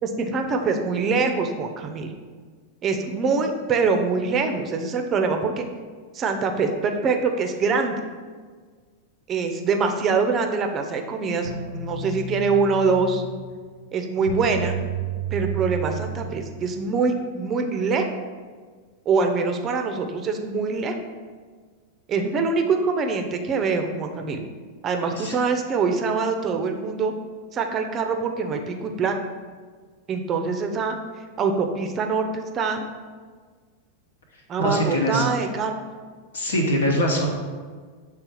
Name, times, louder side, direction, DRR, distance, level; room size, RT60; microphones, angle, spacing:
voice 1, 0.0-2.1 2.8-5.7 6.1-8.0 9.3-13.2 13.9-14.8 15.3-18.1 19.1-21.0 22.1-24.4 24.8-27.1 27.5-29.1 30.1-30.9 31.4-32.8 34.5-35.7, right 4 dB, 30° right, 5 dB, 0.6 m, -24 dB
sound 1, 11.4-17.0, right 5 dB, 80° right, 0.4 m, -32 dB
voice 2, 34.6-35.2 36.3-37.3, equal, 65° left, 0 dB, 1.1 m, -23 dB
6.7 x 3.5 x 4.5 m, 1.5 s
figure-of-eight pair, 90°, 0 cm